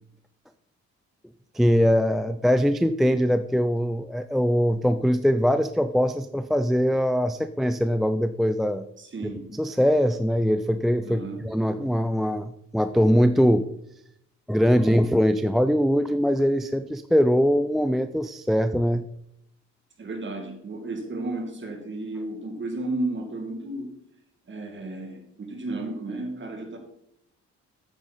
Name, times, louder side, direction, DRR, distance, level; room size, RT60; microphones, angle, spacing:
voice 1, 1.5-8.9 9.5-13.7 14.5-19.1, equal, ahead, 10 dB, 0.3 m, -22 dB
voice 2, 9.0-9.5 11.0-11.4 20.0-23.9 24.5-26.8, right 2 dB, 40° right, 5 dB, 2.2 m, -33 dB
9.0 x 8.8 x 4.1 m, 0.76 s
cardioid pair, 90°, 30 cm